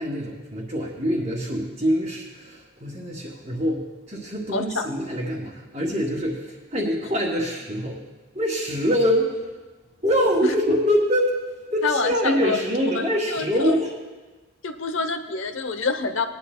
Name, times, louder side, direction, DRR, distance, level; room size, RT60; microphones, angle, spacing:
voice 1, 0.0-6.4 6.7-8.0 8.3-9.3 10.0-11.3 11.7-13.9, equal, 35° right, -5 dB, 1.6 m, -24 dB
voice 2, 4.5-4.9 10.4-10.5 11.8-12.6 12.9-13.8 14.6-16.3, left 4 dB, 70° left, 9 dB, 0.8 m, -27 dB
20.0 x 10.5 x 2.2 m, 1.2 s
head